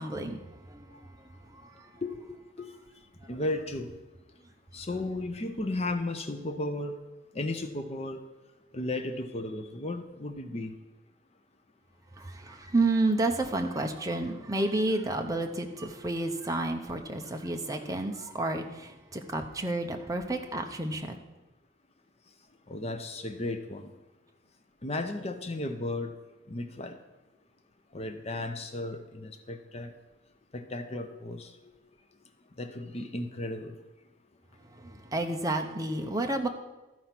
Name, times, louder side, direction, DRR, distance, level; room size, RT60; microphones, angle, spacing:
voice 1, 0.0-2.0 12.2-21.2 34.7-36.5, right 2 dB, 15° right, 4 dB, 0.7 m, -31 dB
voice 2, 2.0-2.7 3.3-3.9 4.7-7.0 7.3-8.2 8.7-10.7 22.7-23.9 24.8-26.1 26.5-27.0 27.9-29.9 30.5-31.5 32.6-33.8, left 2 dB, 30° left, 7 dB, 0.6 m, -34 dB
13.0 x 4.6 x 5.9 m, 1.1 s
head